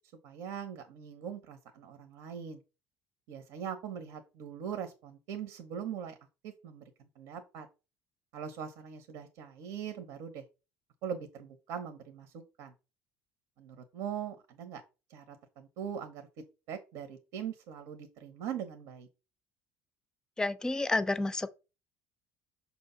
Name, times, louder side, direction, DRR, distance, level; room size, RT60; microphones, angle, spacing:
voice 1, 0.2-2.6 3.3-6.2 6.4-7.7 8.3-10.4 11.0-12.7 13.6-14.8 15.1-19.1, right 8 dB, 70° right, 0.9 m, -41 dB
voice 2, 20.4-21.5, left 2 dB, 10° left, 0.4 m, -30 dB
6.2 x 2.9 x 5.5 m
cardioid pair, 135°, 6 cm